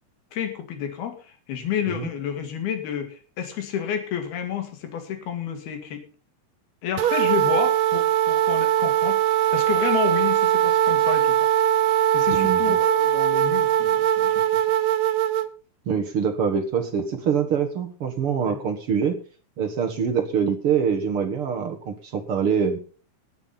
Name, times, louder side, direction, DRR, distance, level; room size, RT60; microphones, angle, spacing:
voice 1, 0.3-6.0 6.8-11.4 12.1-14.4 18.4-18.6, left 8 dB, 80° left, 7 dB, 4.2 m, -30 dB
sound 1, 7.0-15.5, right 11 dB, 90° right, 1.5 m, -21 dB
voice 2, 12.3-12.8 15.9-19.2 19.6-22.8, right 7 dB, 55° right, 6 dB, 1.6 m, -24 dB
18.5 x 7.4 x 5.6 m, 0.39 s
omnidirectional pair, 4.4 m